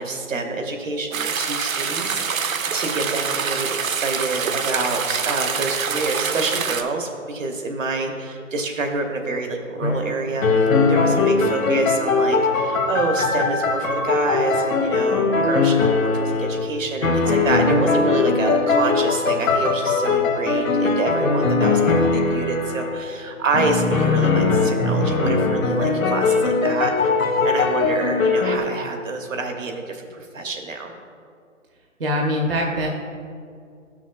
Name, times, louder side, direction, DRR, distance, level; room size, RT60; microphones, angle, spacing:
voice 1, 0.0-10.5 10.9-26.9 27.4-30.9, right 3 dB, 70° right, 3 dB, 1.1 m, -27 dB
sound 1, 1.1-6.8, right 6 dB, 90° right, 0.7 m, -25 dB
sound 2, 9.8-10.1 10.4-16.7 17.0-23.0 23.5-28.6, left 4 dB, 80° left, 1.0 m, -20 dB
voice 2, 32.0-32.9, equal, 45° right, -1 dB, 0.7 m, -22 dB
11.5 x 6.0 x 2.2 m, 2.3 s
hypercardioid pair, 170°, 40 cm